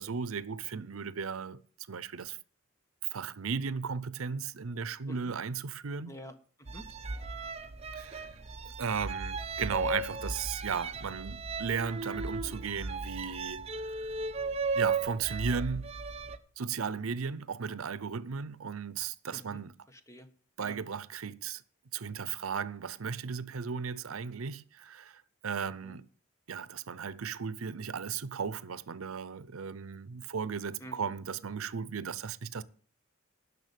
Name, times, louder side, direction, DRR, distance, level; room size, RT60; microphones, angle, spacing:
voice 1, 0.0-1.6 1.9-2.4 3.1-6.1 7.9-8.3 8.8-13.7 14.7-15.9 16.6-19.7 20.6-21.6 21.9-26.1 26.5-32.6, right 6 dB, 90° right, 0.6 m, -36 dB
voice 2, 6.1-6.9 19.3-19.6 19.9-20.3 20.6-20.8 25.8-26.0 30.8-31.2, equal, 15° left, 1.1 m, -48 dB
sound 1, 6.7-16.4, right 3 dB, 30° right, 0.8 m, -36 dB
11.0 x 6.7 x 8.3 m
head